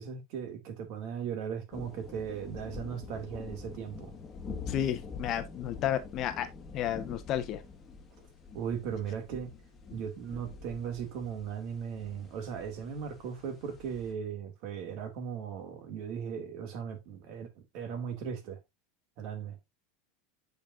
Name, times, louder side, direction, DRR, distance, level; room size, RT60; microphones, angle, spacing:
voice 1, 0.0-4.1 8.5-9.5 9.9-18.6 19.2-19.6, right 7 dB, 50° right, 2.2 m, -38 dB
sound 1, 1.7-14.1, left 4 dB, 20° left, 1.6 m, -46 dB
voice 2, 4.7-6.5 6.7-7.6, left 11 dB, 40° left, 0.9 m, -32 dB
8.6 x 5.3 x 2.5 m
supercardioid pair, 150°, 0 cm